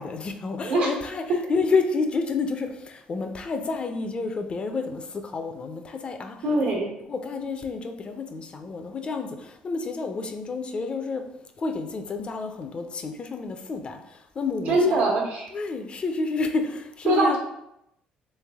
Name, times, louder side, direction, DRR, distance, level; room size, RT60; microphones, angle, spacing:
voice 1, 0.0-6.4 6.6-6.7 7.1-11.2 11.6-15.0 15.5-17.4, left 4 dB, 40° left, 6 dB, 0.5 m, -29 dB
voice 2, 6.4-6.9 14.7-15.5 17.1-17.4, right 1 dB, 80° right, -1 dB, 1.2 m, -22 dB
3.5 x 3.3 x 3.5 m, 0.82 s
cardioid pair, 90°, 3 cm